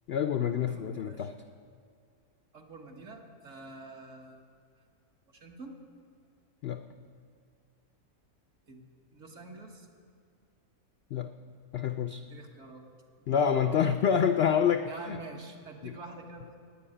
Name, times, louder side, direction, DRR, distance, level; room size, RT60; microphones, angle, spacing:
voice 1, 0.1-1.3 6.6-6.8 11.1-11.3 11.7-12.2 13.3-15.2 15.8-15.9, left 7 dB, 70° left, 8 dB, 0.6 m, -27 dB
voice 2, 0.7-1.3 2.5-4.4 5.3-5.8 8.7-9.9 12.3-12.8 13.2-13.8 14.9-16.5, right 3 dB, 55° right, 1 dB, 1.9 m, -47 dB
12.5 x 8.9 x 10.0 m, 2.2 s
omnidirectional pair, 1.6 m